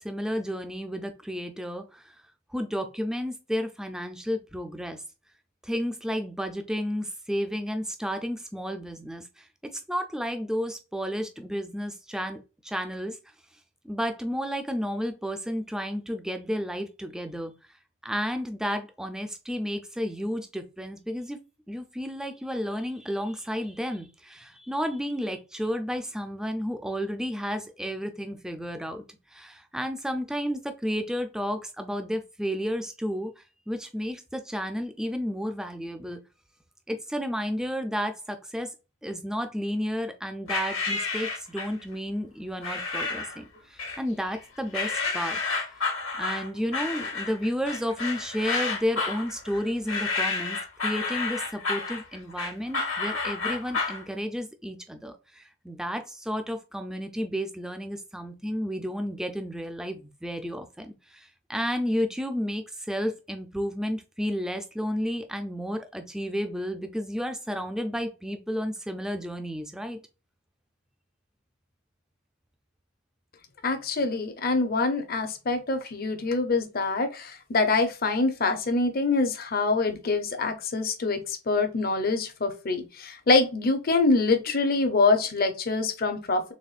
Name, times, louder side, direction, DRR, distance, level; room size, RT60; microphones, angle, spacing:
voice 1, 0.0-2.2 2.5-5.0 5.6-9.5 9.7-13.2 13.8-17.5 18.0-21.4 21.7-29.0 29.3-36.2 36.9-38.7 39.0-45.4 46.2-70.0, equal, 5° right, 7 dB, 0.4 m, -32 dB
sound 1, 40.5-41.8 42.6-43.4 43.8-44.4 44.7-54.0, left 4 dB, 70° left, 1.3 m, -30 dB
voice 2, 73.6-86.5, left 3 dB, 45° left, 7 dB, 0.6 m, -25 dB
4.1 x 3.4 x 2.4 m, 0.30 s
head